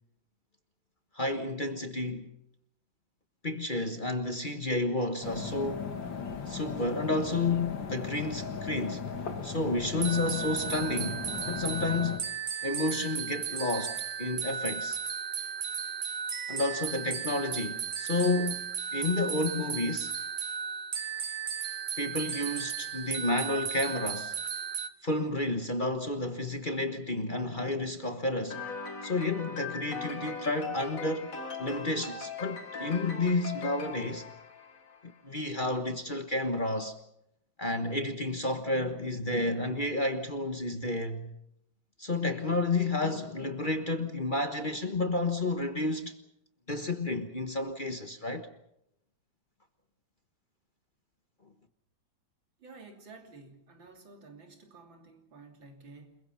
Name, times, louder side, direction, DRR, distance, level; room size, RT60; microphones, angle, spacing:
voice 1, 1.1-2.3 3.4-5.9 6.5-9.1 9.4-12.2 12.6-15.0 16.5-18.6 18.9-20.2 22.0-24.3 25.0-28.6 29.0-34.3 35.2-37.0 37.6-41.3 42.0-46.1 46.7-48.5, left 2 dB, 30° left, 1.2 m, -31 dB
sound 1, 5.2-12.2, left 5 dB, 80° left, 2.7 m, -37 dB
sound 2, 10.0-24.9, right 7 dB, 45° right, 1.0 m, -35 dB
sound 3, 28.5-35.1, left 4 dB, 45° left, 2.3 m, -40 dB
voice 2, 52.6-56.2, right 3 dB, 85° right, 3.9 m, -52 dB
29.0 x 22.0 x 5.8 m
omnidirectional pair, 2.0 m